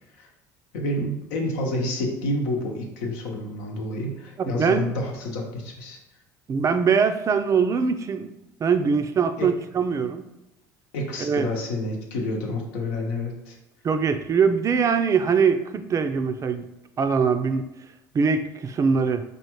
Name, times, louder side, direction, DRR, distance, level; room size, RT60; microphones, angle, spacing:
voice 1, 0.7-6.0 9.4-9.5 10.9-13.6, left 1 dB, 80° left, 1 dB, 0.9 m, -29 dB
voice 2, 4.4-4.9 6.5-8.3 8.6-10.2 11.2-11.5 13.8-16.7 17.0-17.7 18.1-19.2, right 5 dB, 35° right, 8 dB, 0.4 m, -22 dB
4.8 x 2.5 x 3.0 m, 0.96 s
hypercardioid pair, 80°, 9 cm